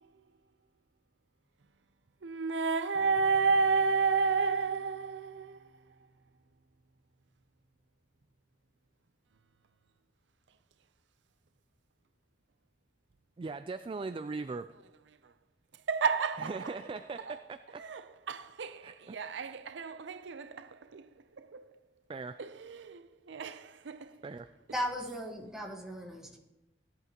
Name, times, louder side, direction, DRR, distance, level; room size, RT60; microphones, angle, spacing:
voice 1, 2.2-5.7 15.9-16.7 17.8-21.1 21.4-21.6 22.4-24.2, right 4 dB, 85° right, 0.6 m, -31 dB
voice 2, 13.4-14.7 16.4-17.8 18.8-19.2 22.1-22.4 24.2-24.5, right 4 dB, 30° right, 0.3 m, -39 dB
voice 3, 24.7-26.4, equal, 5° right, 1.4 m, -37 dB
17.0 x 11.0 x 3.0 m
head